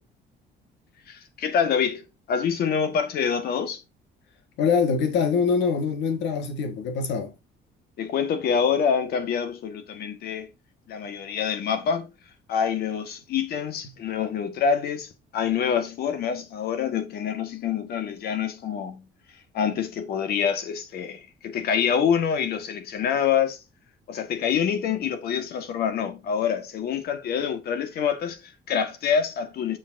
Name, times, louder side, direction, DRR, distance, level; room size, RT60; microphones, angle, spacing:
voice 1, 1.1-3.8 8.0-10.5 10.9-12.1 12.5-19.0 19.5-23.6 24.1-29.8, left 7 dB, 55° left, 1.5 m, -26 dB
voice 2, 4.6-7.3, left 5 dB, 75° left, 1.7 m, -24 dB
7.0 x 6.6 x 2.6 m
cardioid pair, 170°, 19 cm